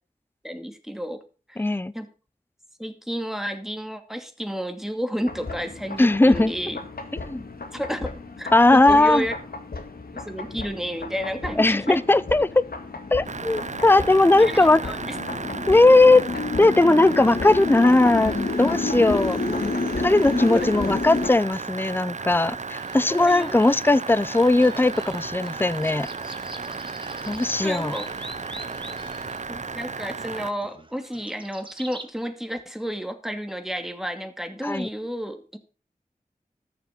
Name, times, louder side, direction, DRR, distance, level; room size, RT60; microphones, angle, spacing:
voice 1, 0.4-1.2 1.5-2.1 2.8-6.8 7.7-9.3 10.1-12.0 14.4-15.1 20.3-20.7 23.1-23.6 27.6-28.1 29.5-35.6, equal, ahead, 2.4 m, -31 dB
voice 2, 1.6-1.9 6.0-6.5 7.3-7.4 8.5-9.2 11.6-12.6 13.1-14.8 15.7-16.2 16.6-19.4 20.0-26.1 27.3-27.9 34.6-34.9, left 2 dB, 15° left, 0.6 m, -18 dB
sound 1, 5.3-21.3, left 3 dB, 85° left, 2.2 m, -31 dB
sound 2, 13.3-30.5, right 4 dB, 50° right, 0.6 m, -34 dB
sound 3, 22.7-32.1, right 1 dB, 35° right, 2.1 m, -43 dB
14.0 x 6.9 x 5.8 m
wide cardioid pair, 45°, 15 cm